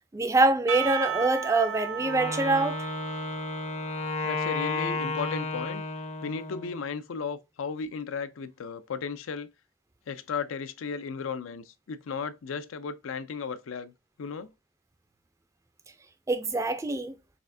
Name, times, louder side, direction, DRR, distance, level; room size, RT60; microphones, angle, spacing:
voice 1, 0.1-2.9 16.3-17.2, right 2 dB, 15° right, 0.3 m, -25 dB
Percussion / Church bell, 0.7-5.2, right 9 dB, 75° right, 0.5 m, -36 dB
Wind instrument woodwind instrument, 2.0-6.8, left 3 dB, 35° left, 0.6 m, -32 dB
voice 2, 4.2-5.8 6.2-9.5 10.1-13.9 14.2-14.5, left 5 dB, 80° left, 0.4 m, -35 dB
4.2 x 3.4 x 2.6 m
head